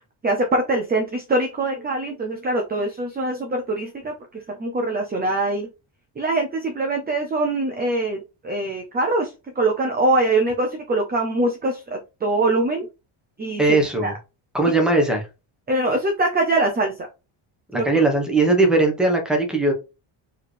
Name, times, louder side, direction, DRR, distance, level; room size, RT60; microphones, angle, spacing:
voice 1, 0.2-5.7 6.2-8.2 8.4-12.9 13.4-13.6 14.0-14.1 15.7-16.9 17.7-18.1, right 2 dB, 20° right, 0.6 m, -23 dB
voice 2, 13.6-14.1 14.5-15.3 17.7-19.7, right 2 dB, ahead, 1.2 m, -19 dB
4.6 x 3.3 x 3.4 m
cardioid pair, 140°, 50 cm